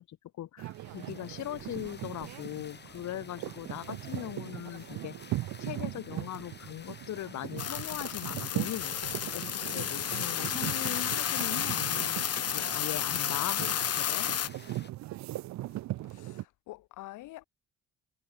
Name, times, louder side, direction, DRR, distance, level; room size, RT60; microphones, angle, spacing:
voice 1, 0.0-8.9 9.3-12.2 12.5-14.3, left 13 dB, 70° left, 1.3 m, -40 dB
sound 1, 0.6-14.9, left 5 dB, 35° left, 2.5 m, -52 dB
sound 2, 0.6-16.4, right 16 dB, 65° right, 0.5 m, -40 dB
sound 3, 7.6-14.5, left 9 dB, 55° left, 1.5 m, -32 dB
voice 2, 16.0-17.4, left 17 dB, 90° left, 1.4 m, -47 dB
cardioid pair, 90°, 30 cm